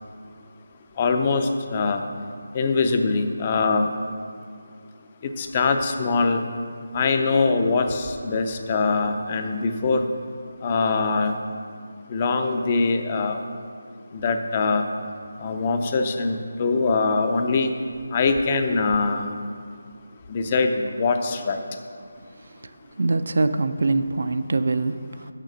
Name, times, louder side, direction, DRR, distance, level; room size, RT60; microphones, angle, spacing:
voice 1, 1.0-2.0 2.5-3.9 5.2-6.4 6.9-10.0 10.6-11.4 12.1-13.4 14.1-14.9 15.4-17.7 18.1-19.3 20.3-21.6, left 4 dB, 25° left, 6 dB, 0.4 m, -23 dB
voice 2, 23.0-25.3, right 3 dB, 65° right, 11 dB, 0.4 m, -23 dB
6.6 x 5.7 x 6.1 m, 2.2 s
figure-of-eight pair, 170°, 0 cm